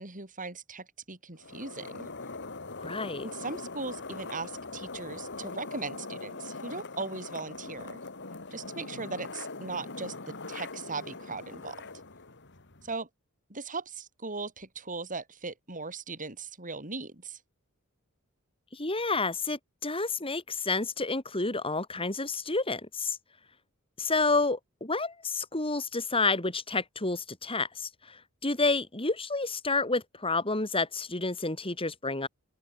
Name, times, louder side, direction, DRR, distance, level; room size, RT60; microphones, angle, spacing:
voice 1, 0.0-2.1 3.2-8.0 8.5-11.8 12.8-13.1 13.5-17.4, right 4 dB, 40° right, 7.8 m, -38 dB
sound 1, 1.4-12.9, left 3 dB, 55° left, 3.3 m, -42 dB
voice 2, 2.8-3.3 18.7-23.2 24.0-32.3, left 3 dB, 25° left, 5.1 m, -30 dB
open air
head